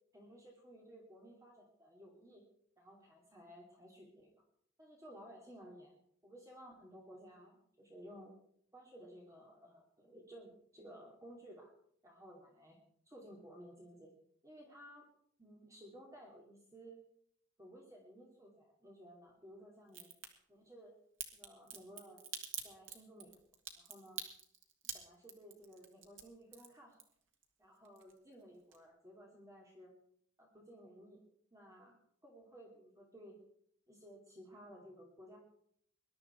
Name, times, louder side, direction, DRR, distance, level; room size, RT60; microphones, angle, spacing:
voice 1, 0.1-2.4 2.8-4.3 4.8-5.9 6.2-8.3 8.7-11.7 12.0-12.8 13.1-14.1 14.4-15.1 15.4-17.0 17.6-20.1 20.5-20.9 21.3-22.2 22.6-23.3 23.8-24.2 24.9-27.0 27.6-29.9 30.4-31.2 31.5-33.4 33.9-35.4, equal, 15° right, -1 dB, 2.7 m, -56 dB
Crack, 19.9-20.3 21.2-27.4 27.8-28.4 28.7-28.8, right 8 dB, 70° right, 2.2 m, -46 dB
21.0 x 12.0 x 4.5 m, 0.66 s
head